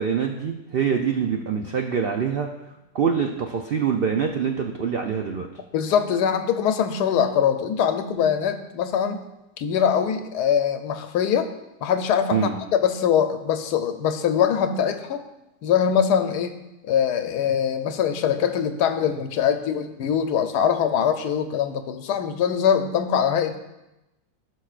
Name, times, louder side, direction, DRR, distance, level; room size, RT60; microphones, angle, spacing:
voice 1, 0.0-2.5 2.9-5.5 12.3-12.5, right 7 dB, 85° right, 4 dB, 0.5 m, -24 dB
voice 2, 5.7-9.2 9.6-11.5 11.8-15.2 15.6-16.5 16.8-23.6, left 8 dB, 85° left, 8 dB, 1.3 m, -22 dB
15.5 x 6.5 x 2.5 m, 0.96 s
omnidirectional pair, 1.7 m